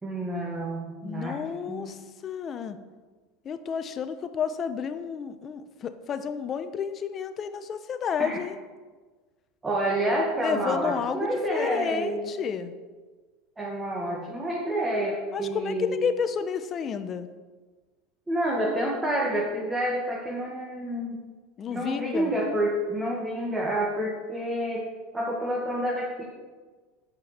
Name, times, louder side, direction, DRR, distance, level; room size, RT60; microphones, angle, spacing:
voice 1, 0.0-1.4 1.7-1.9 8.2-8.4 9.6-12.3 13.6-16.0 18.3-21.2 21.7-24.9 25.1-26.2, right 1 dB, 15° right, -3 dB, 1.5 m, -28 dB
voice 2, 1.0-2.8 3.4-8.6 10.4-12.7 15.3-17.3 21.6-22.3, left 7 dB, 30° left, 10 dB, 0.7 m, -31 dB
8.2 x 5.2 x 7.2 m, 1.4 s
supercardioid pair, 125°, 0 cm